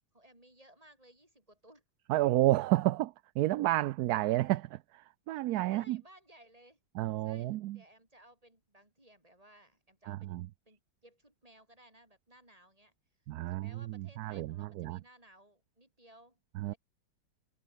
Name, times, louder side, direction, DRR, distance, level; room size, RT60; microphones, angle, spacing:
voice 1, 0.1-1.8 5.7-6.8 7.2-12.9 13.5-16.8, right 1 dB, 20° right, 7.1 m, -60 dB
voice 2, 2.1-6.0 7.0-7.8 10.1-10.5 13.3-15.0 16.6-16.7, right 16 dB, 70° right, 1.0 m, -31 dB
omnidirectional pair, 1.9 m